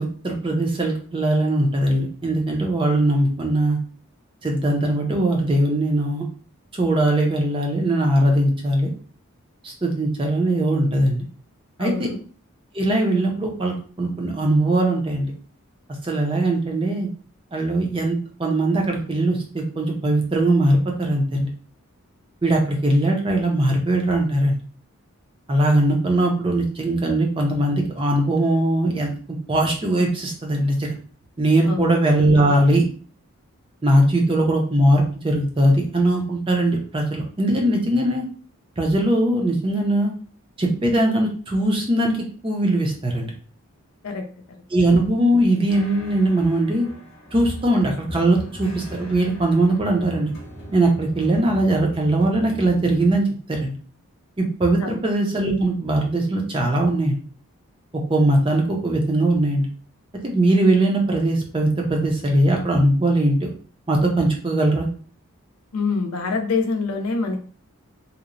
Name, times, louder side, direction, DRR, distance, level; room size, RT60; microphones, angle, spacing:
voice 1, 0.0-3.8 4.4-6.2 6.7-8.9 9.6-11.2 11.8-12.1 12.7-15.3 16.0-17.1 17.5-21.5 22.4-24.6 25.5-29.1 29.5-30.9 31.4-32.8 33.8-38.2 38.8-40.1 40.6-43.3 44.7-46.9 47.3-50.3 50.7-53.7 54.4-57.2 58.1-59.7 60.2-63.5 63.9-64.9, right 1 dB, 25° right, 1 dB, 0.5 m, -20 dB
voice 2, 11.8-12.2 31.6-32.0 44.0-44.2 54.8-55.0 65.7-67.4, left 4 dB, 85° left, 4 dB, 0.5 m, -25 dB
sound 1, 45.7-53.2, equal, 55° left, 0.8 m, -39 dB
2.8 x 2.0 x 2.5 m, 0.43 s
head